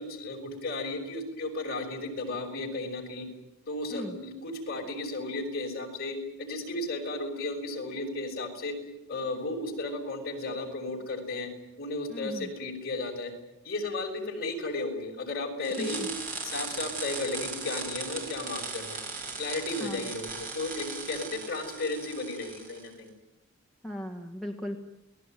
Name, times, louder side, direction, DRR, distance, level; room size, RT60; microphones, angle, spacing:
voice 1, 0.0-3.3 3.7-8.7 9.1-11.5 11.8-13.3 13.6-16.0 16.4-19.0 19.4-23.1, left 2 dB, 45° left, 1 dB, 6.3 m, -34 dB
voice 2, 12.1-12.5 15.8-16.1 19.8-20.0 23.8-24.8, equal, ahead, 1 dB, 1.7 m, -37 dB
sound 1, 15.6-22.9, right 4 dB, 40° right, 5.8 m, -38 dB
28.5 x 19.5 x 9.3 m, 0.89 s
head